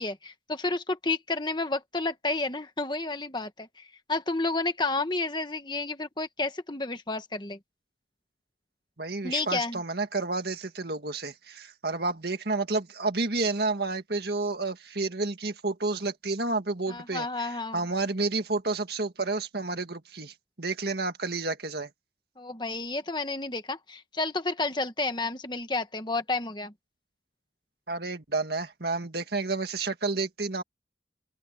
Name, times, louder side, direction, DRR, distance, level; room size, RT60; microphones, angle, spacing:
voice 1, 0.0-7.6 9.2-9.8 16.9-17.8 22.4-26.7, left 3 dB, 25° left, 1.4 m, -31 dB
voice 2, 9.0-21.9 27.9-30.6, right 3 dB, 55° right, 1.9 m, -30 dB
open air
head